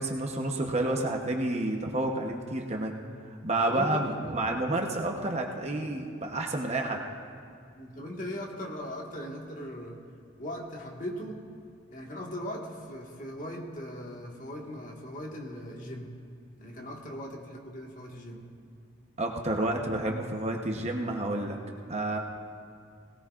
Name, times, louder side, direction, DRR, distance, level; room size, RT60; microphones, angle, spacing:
voice 1, 0.0-2.9 3.3-7.0 19.2-21.6 21.9-22.2, right 2 dB, 30° right, 2 dB, 0.9 m, -30 dB
voice 2, 3.7-4.1 7.8-10.0 10.4-11.5 11.9-16.1 16.6-18.5 19.5-19.7, equal, 40° left, -1 dB, 1.7 m, -39 dB
19.5 x 17.5 x 2.5 m, 2.4 s
head